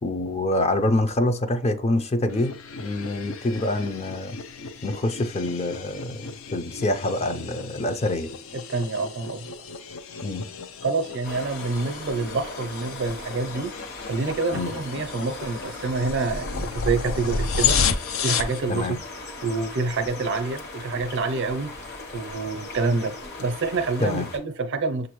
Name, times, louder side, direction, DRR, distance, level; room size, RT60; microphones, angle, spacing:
voice 1, 0.0-4.4 4.8-8.3 10.2-10.5 14.5-14.7 18.7-19.0 24.0-24.3, left 1 dB, 30° left, 0.5 m, -26 dB
sound 1, 2.3-18.6, left 5 dB, 75° left, 0.5 m, -32 dB
voice 2, 8.7-9.5 10.8-13.7 14.1-17.8 18.2-19.0 19.4-21.7 22.1-25.1, right 3 dB, 60° right, 0.6 m, -27 dB
sound 2, 11.2-24.4, left 2 dB, 55° left, 1.2 m, -39 dB
6.6 x 2.6 x 3.0 m
head